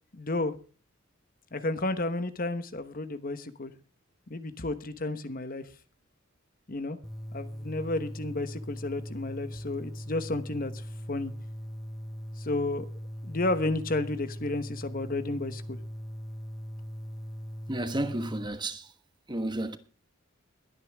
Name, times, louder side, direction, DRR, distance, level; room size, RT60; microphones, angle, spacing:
voice 1, 0.1-0.5 1.5-3.7 4.3-5.6 6.7-7.0 7.3-10.7 11.1-11.3 12.4-12.9 13.2-15.8, left 2 dB, 45° left, 1.1 m, -32 dB
sound 1, 7.0-18.5, equal, ahead, 1.1 m, -40 dB
voice 2, 17.7-18.9 19.3-19.8, right 1 dB, 20° right, 1.3 m, -32 dB
21.5 x 9.6 x 3.5 m
head